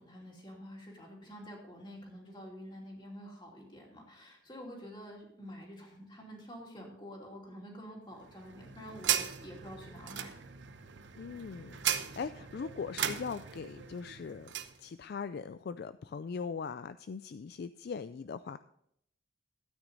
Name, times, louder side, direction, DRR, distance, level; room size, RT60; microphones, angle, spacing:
voice 1, 0.0-10.3, equal, 25° left, -1 dB, 2.8 m, -48 dB
sound 1, 8.2-14.8, right 9 dB, 70° right, 0.8 m, -37 dB
voice 2, 11.2-14.5 14.8-18.6, left 5 dB, 55° left, 12 dB, 0.3 m, -40 dB
13.0 x 9.1 x 4.0 m, 0.72 s
head